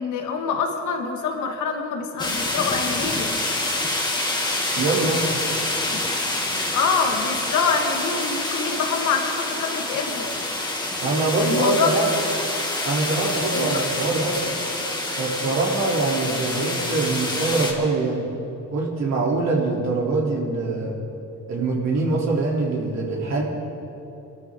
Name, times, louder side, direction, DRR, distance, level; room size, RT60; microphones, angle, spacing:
voice 1, 0.0-3.4 6.7-10.3 11.4-12.0 13.4-13.8, left 5 dB, 80° left, 3 dB, 1.9 m, -25 dB
sound 1, 2.2-17.7, left 2 dB, 15° left, 2.6 m, -27 dB
voice 2, 4.7-5.2 11.0-12.1 12.8-14.4 15.2-18.3 18.7-21.0 21.5-23.4, right 3 dB, 60° right, -2 dB, 3.3 m, -23 dB
22.5 x 13.0 x 3.8 m, 3.0 s
cardioid pair, 90°, 30 cm